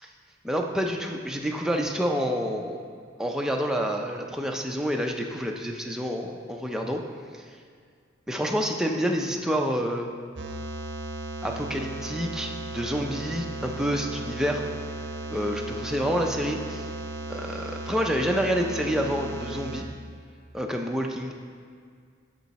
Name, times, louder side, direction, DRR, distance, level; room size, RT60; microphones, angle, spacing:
voice 1, 0.4-2.8 3.2-7.0 8.3-10.1 11.4-14.6 15.3-16.9 17.3-19.9 20.5-21.3, equal, 5° right, 1 dB, 0.5 m, -28 dB
sound 1, 10.4-19.8, right 2 dB, 60° right, 0.8 m, -36 dB
8.7 x 6.2 x 4.1 m, 2.1 s
head